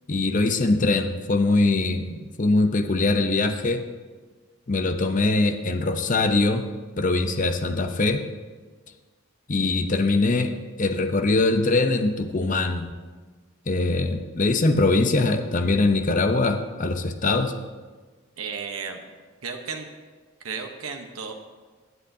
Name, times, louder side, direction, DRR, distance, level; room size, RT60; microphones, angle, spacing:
voice 1, 0.1-3.8 4.7-6.7 7.0-8.2 9.5-10.5 10.8-12.9 13.7-17.5, left 2 dB, 35° left, 6 dB, 0.7 m, -22 dB
voice 2, 18.4-19.0 19.4-19.9 20.4-21.3, right 5 dB, 80° right, 4 dB, 0.9 m, -33 dB
21.5 x 8.0 x 2.7 m, 1.4 s
head